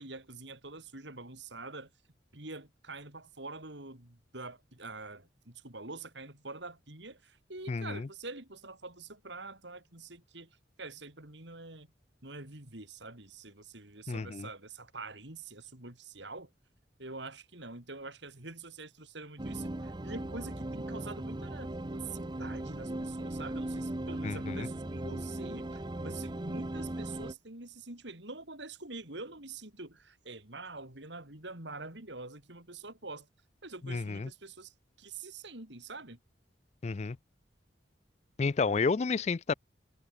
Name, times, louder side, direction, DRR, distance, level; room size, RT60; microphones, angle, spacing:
voice 1, 0.0-1.9 2.3-11.9 12.2-16.5 17.0-33.3 33.6-36.2, right 3 dB, 70° right, 5.0 m, -45 dB
voice 2, 7.7-8.1 14.1-14.5 24.2-24.7 33.8-34.3 36.8-37.2 38.4-39.5, left 4 dB, 35° left, 0.4 m, -31 dB
sound 1, 19.4-27.3, right 1 dB, 25° right, 0.7 m, -38 dB
head